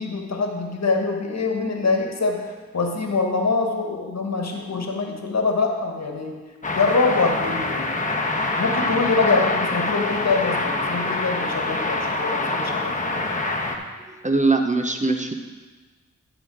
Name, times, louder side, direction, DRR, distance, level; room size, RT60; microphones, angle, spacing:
voice 1, 0.0-6.4 6.7-7.9 8.6-13.2, left 3 dB, 60° left, 3 dB, 1.4 m, -24 dB
sound 1, 6.6-13.8, left 2 dB, 25° left, 1.2 m, -25 dB
voice 2, 14.1-15.3, right 3 dB, 25° right, 5 dB, 0.9 m, -21 dB
12.0 x 4.0 x 6.2 m, 1.3 s
cardioid pair, 40°, 31 cm